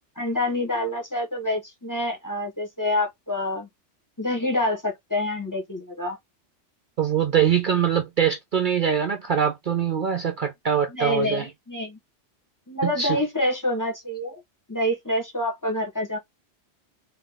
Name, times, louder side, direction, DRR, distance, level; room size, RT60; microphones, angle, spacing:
voice 1, 0.2-3.7 4.2-6.2 10.9-12.0 12.7-14.4 14.7-16.2, left 1 dB, 15° left, 1.1 m, -27 dB
voice 2, 7.0-11.5 12.8-13.2, right 8 dB, 50° right, 0.7 m, -23 dB
3.7 x 3.1 x 3.4 m
omnidirectional pair, 1.2 m